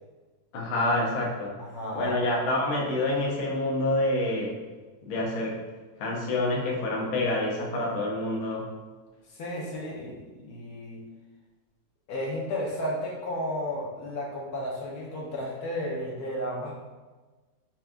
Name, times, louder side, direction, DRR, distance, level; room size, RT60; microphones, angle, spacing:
voice 1, 0.5-1.6 1.9-4.6 5.1-5.6 6.0-8.7, left 1 dB, 55° left, -3 dB, 1.0 m, -27 dB
voice 2, 1.6-2.2 9.3-11.0 12.1-16.8, left 1 dB, 75° left, -3 dB, 1.2 m, -33 dB
5.6 x 2.3 x 2.5 m, 1.3 s
omnidirectional pair, 1.7 m